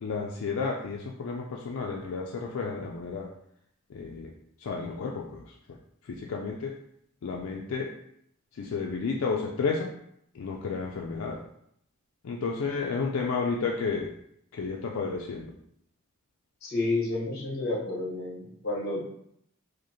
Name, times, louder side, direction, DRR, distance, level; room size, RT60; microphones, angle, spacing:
voice 1, 0.0-3.3 3.9-4.3 4.6-5.4 6.1-6.8 7.2-7.9 8.6-9.9 10.4-11.4 12.2-14.1 14.6-15.5, left 4 dB, 85° left, 0 dB, 0.4 m, -31 dB
voice 2, 16.6-19.1, left 2 dB, 50° left, -4 dB, 1.3 m, -30 dB
4.9 x 2.1 x 2.9 m, 0.72 s
head